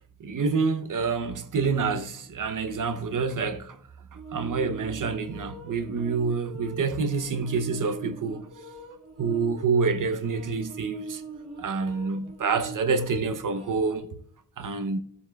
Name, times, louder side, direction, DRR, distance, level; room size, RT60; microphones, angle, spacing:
voice 1, 0.2-3.8 4.3-8.5 9.2-11.2 11.6-14.1 14.6-15.0, right 4 dB, 70° right, 0.7 m, -27 dB
sound 1, 4.1-14.0, right 4 dB, 55° right, 2.2 m, -42 dB
16.0 x 7.1 x 2.3 m
wide cardioid pair, 165°, 32 cm